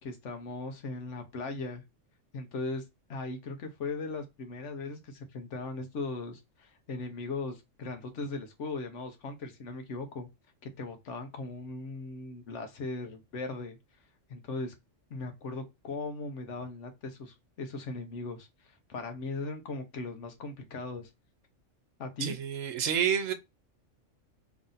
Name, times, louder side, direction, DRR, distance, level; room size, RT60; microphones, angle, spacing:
voice 1, 0.0-1.8 2.3-2.8 3.1-10.3 10.8-13.8 14.3-14.7 15.1-21.1 22.0-22.3, left 3 dB, 70° left, 1.2 m, -38 dB
voice 2, 22.2-23.3, right 8 dB, 90° right, 1.0 m, -29 dB
3.3 x 2.5 x 3.9 m
omnidirectional pair, 1.3 m